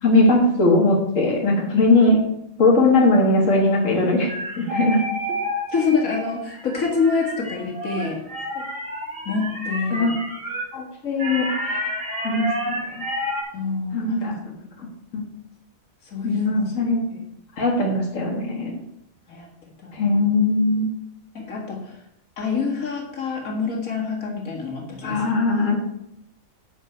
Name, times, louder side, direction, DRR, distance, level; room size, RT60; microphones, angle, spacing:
voice 1, 0.0-2.2 2.6-5.0 8.6-8.7 9.9-10.1 10.7-11.9 12.2-13.0 13.9-14.3 15.1-15.2 16.2-17.0 17.6-18.8 19.9-20.9 25.0-25.9, left 2 dB, 65° left, -1 dB, 2.1 m, -20 dB
sound 1, 4.3-10.6 11.2-13.4, equal, 70° right, 3.4 m, -30 dB
voice 2, 5.7-8.2 9.3-10.1 13.5-14.4 16.1-16.7 17.1-17.2 19.3-19.5 19.8-20.1 21.3-22.0 22.4-25.4, left 4 dB, 85° left, -1 dB, 2.3 m, -26 dB
10.5 x 7.4 x 4.5 m, 0.79 s
omnidirectional pair, 1.4 m